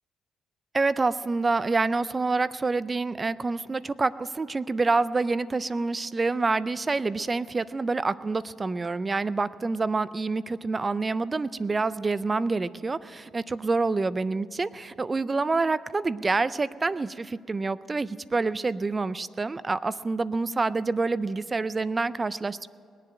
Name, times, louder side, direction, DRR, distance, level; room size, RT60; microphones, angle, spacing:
voice 1, 0.7-22.7, right 3 dB, 25° right, 17 dB, 0.4 m, -27 dB
20.0 x 7.5 x 8.9 m, 2.3 s
cardioid pair, 90°, 0 cm